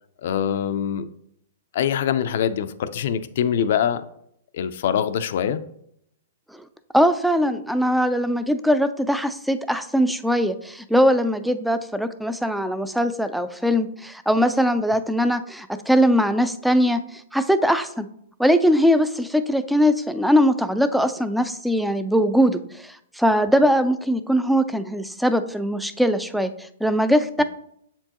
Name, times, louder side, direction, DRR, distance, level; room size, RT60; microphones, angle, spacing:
voice 1, 0.2-1.1 1.7-4.0 4.5-5.6, left 9 dB, 60° left, 12 dB, 0.5 m, -23 dB
voice 2, 6.9-18.1 18.4-27.4, equal, ahead, 11 dB, 0.4 m, -21 dB
7.2 x 4.5 x 2.9 m, 0.72 s
hypercardioid pair, 140°, 0 cm